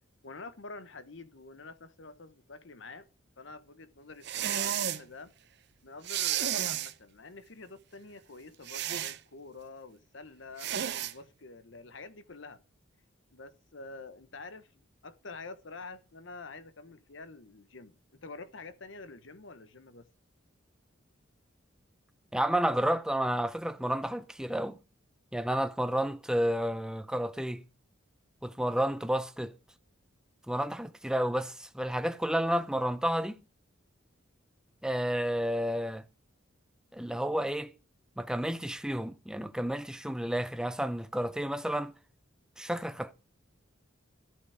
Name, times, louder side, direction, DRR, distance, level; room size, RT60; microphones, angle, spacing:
voice 1, 0.2-3.1 3.4-5.3 5.8-12.6 13.3-20.1, left 3 dB, 65° left, 1.0 m, -47 dB
sound 1, 4.2-5.0 6.0-6.9 8.7-9.2 10.6-11.1, right 10 dB, 55° right, 0.6 m, -32 dB
voice 2, 22.3-24.8 25.3-27.6 28.4-29.5 30.5-33.4 34.8-36.0 36.9-37.7 38.2-41.9 42.6-43.1, equal, 5° right, 0.6 m, -31 dB
13.5 x 8.4 x 4.7 m
head